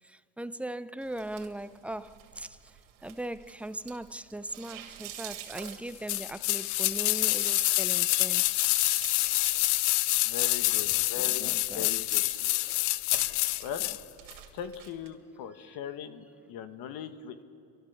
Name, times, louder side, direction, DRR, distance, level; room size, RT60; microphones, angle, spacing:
voice 1, 0.0-8.5 8.8-8.9 11.0-11.9 13.8-13.9 15.5-15.8, right 1 dB, 5° right, 0.4 m, -40 dB
sound 1, 1.0-15.1, right 11 dB, 90° right, 2.4 m, -49 dB
sound 2, 6.1-14.0 14.3-14.4, left 21 dB, 85° left, 0.5 m, -27 dB
voice 2, 10.2-12.2 13.6-13.9 14.5-17.4, left 8 dB, 65° left, 1.5 m, -39 dB
30.0 x 12.5 x 7.0 m
supercardioid pair, 100°, 38 cm